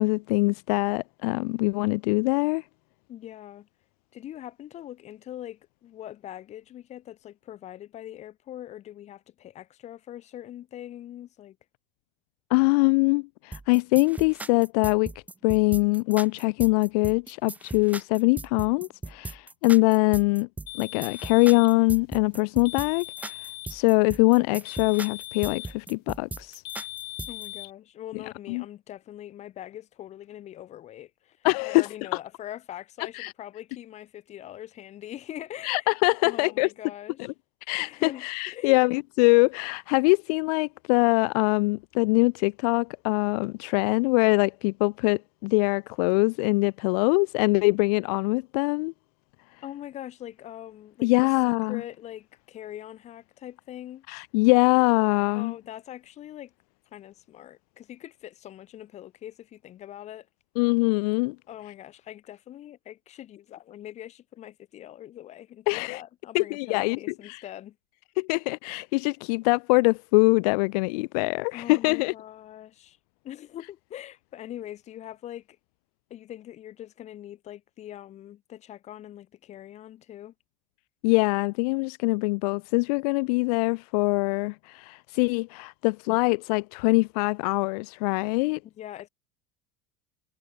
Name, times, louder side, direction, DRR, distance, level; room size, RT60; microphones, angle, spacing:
voice 1, 0.0-2.6 12.5-15.1 15.4-20.5 20.8-26.6 28.5-28.6 31.4-32.2 33.1-33.3 35.6-36.7 37.7-48.9 51.0-51.8 54.1-55.5 60.6-61.4 65.7-66.0 66.3-67.4 68.2-72.1 81.0-88.6, left 28 dB, 70° left, 1.1 m, -23 dB
voice 2, 3.1-3.7 4.1-11.6 27.3-35.9 36.2-37.3 37.8-38.8 49.6-51.1 51.4-54.2 55.3-56.5 56.9-60.3 61.5-67.8 71.5-73.0 73.2-75.6 76.1-80.3 88.6-89.1, left 12 dB, 35° left, 7.8 m, -42 dB
sound 1, 13.5-27.5, right 3 dB, 5° right, 1.4 m, -38 dB
sound 2, 20.7-21.8 22.7-23.8 24.7-25.8 26.7-27.7, left 23 dB, 50° left, 3.3 m, -40 dB
cardioid pair, 160°, 20 cm